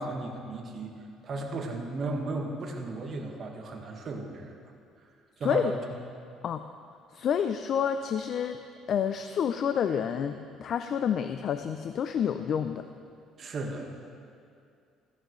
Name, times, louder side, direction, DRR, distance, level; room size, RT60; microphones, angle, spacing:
voice 1, 0.0-4.5 5.4-5.8 13.4-13.9, right 2 dB, 45° right, 1 dB, 1.5 m, -35 dB
voice 2, 5.4-5.7 6.4-6.6 7.1-8.6 8.9-12.8, left 8 dB, 50° left, 9 dB, 0.4 m, -29 dB
15.0 x 11.0 x 3.2 m, 2.4 s
cardioid pair, 110°, 0 cm